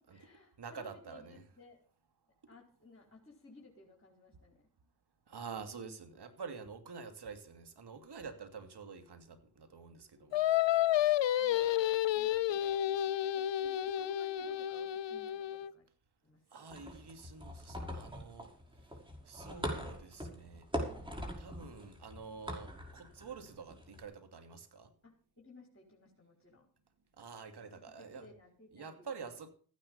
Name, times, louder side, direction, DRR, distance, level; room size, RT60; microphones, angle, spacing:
voice 1, 0.0-1.8 2.5-4.7 5.8-5.9 11.3-11.7 12.1-15.8 16.2-16.7 25.0-26.7 27.5-27.7 28.0-29.1, left 2 dB, 25° left, 4.6 m, -59 dB
voice 2, 0.6-1.4 5.3-10.4 16.5-18.5 19.2-20.7 21.4-24.9 27.2-28.3 28.7-29.5, right 5 dB, 55° right, 2.7 m, -48 dB
Singing, 10.3-15.7, left 12 dB, 65° left, 0.8 m, -31 dB
sound 1, 16.7-24.0, equal, 10° right, 5.8 m, -43 dB
15.0 x 9.9 x 5.5 m
supercardioid pair, 50°, 46 cm